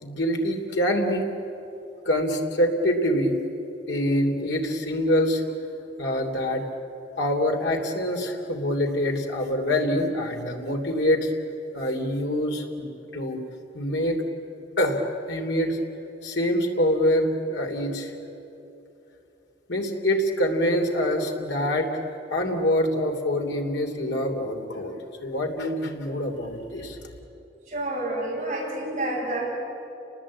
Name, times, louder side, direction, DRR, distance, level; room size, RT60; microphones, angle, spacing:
voice 1, 0.0-1.2 2.0-3.4 3.9-5.4 6.0-6.6 7.1-11.3 11.7-13.4 13.7-14.2 14.8-15.8 16.2-18.2 19.7-21.9 22.3-24.9 25.2-27.0, left 1 dB, 80° left, 3 dB, 3.1 m, -25 dB
voice 2, 27.7-29.5, right 1 dB, 35° right, -4 dB, 7.8 m, -29 dB
30.0 x 20.0 x 8.6 m, 2.9 s
head